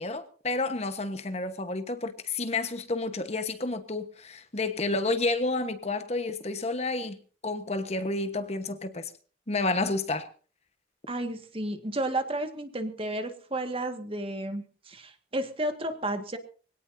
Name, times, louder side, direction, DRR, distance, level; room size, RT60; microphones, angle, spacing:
voice 1, 0.0-7.2 7.4-9.1 9.5-10.3, left 2 dB, 35° left, 1.3 m, -30 dB
voice 2, 11.1-16.4, right 1 dB, 30° right, 1.9 m, -32 dB
24.0 x 17.5 x 2.8 m
head